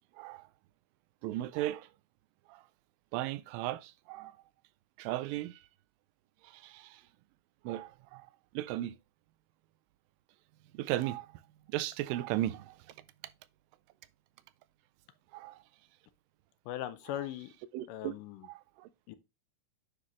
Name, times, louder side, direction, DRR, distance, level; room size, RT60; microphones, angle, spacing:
voice 1, 0.2-0.5 1.2-1.9 2.5-2.6 3.1-4.4 5.0-5.6 6.4-7.0 7.6-8.3 8.5-9.0 10.7-11.4 11.7-12.8 15.3-15.6 17.7-18.1 18.4-18.9, right 14 dB, 85° right, 2.3 m, -36 dB
voice 2, 16.7-17.5 17.9-18.5 19.1-19.2, left 12 dB, 80° left, 2.2 m, -39 dB
9.7 x 4.0 x 3.0 m
omnidirectional pair, 3.9 m